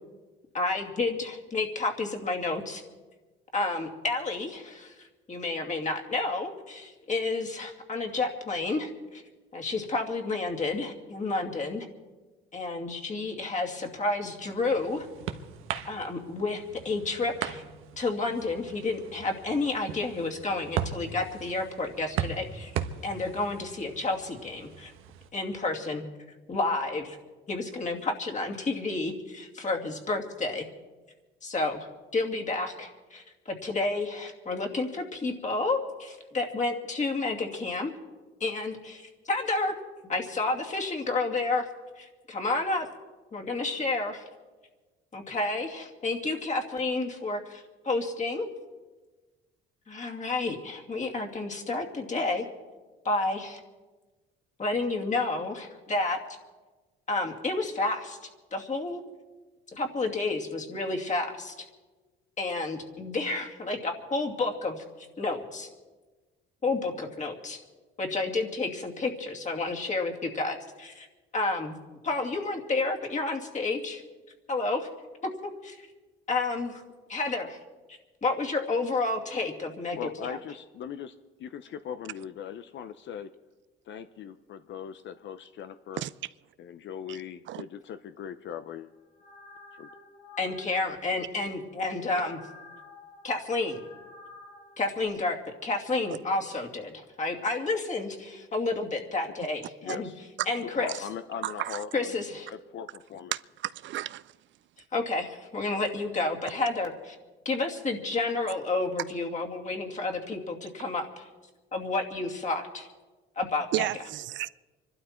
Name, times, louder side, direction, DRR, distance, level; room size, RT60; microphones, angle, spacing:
voice 1, 0.5-2.8 3.5-4.9 5.3-9.2 9.5-11.9 12.5-15.1 15.9-17.6 17.9-22.7 23.0-24.9 25.3-26.0 26.5-27.2 27.5-30.6 31.4-37.9 38.4-39.7 40.0-41.7 42.0-42.9 43.3-44.2 45.1-48.5 49.9-52.5 53.0-53.6 54.6-56.2 57.1-58.2 58.5-59.0 59.7-61.7 62.4-65.7 66.6-67.6 68.0-71.1 71.3-71.8 72.0-74.0 74.5-74.9 75.4-75.9 76.3-76.8 77.1-77.6 77.9-80.4 90.4-92.4 93.2-93.8 94.8-100.1 100.5-100.9 101.9-102.5 104.9-107.2 107.4-111.3 111.7-112.9 113.4-114.0, left 3 dB, 35° left, 2.6 m, -30 dB
sound 1, 14.2-25.3, right 9 dB, 80° right, 1.1 m, -38 dB
voice 2, 79.9-81.1 81.4-83.3 83.9-86.0 86.6-88.9 89.7-89.9 92.1-92.3 99.8-100.2 100.6-102.1 102.5-103.3, left 8 dB, 60° left, 0.7 m, -39 dB
sound 2, 88.9-95.1, left 3 dB, 90° left, 5.1 m, -52 dB
voice 3, 101.4-101.8 103.3-104.2 113.7-114.5, right 14 dB, 65° right, 0.5 m, -32 dB
26.0 x 12.0 x 4.5 m
supercardioid pair, 80°, 21 cm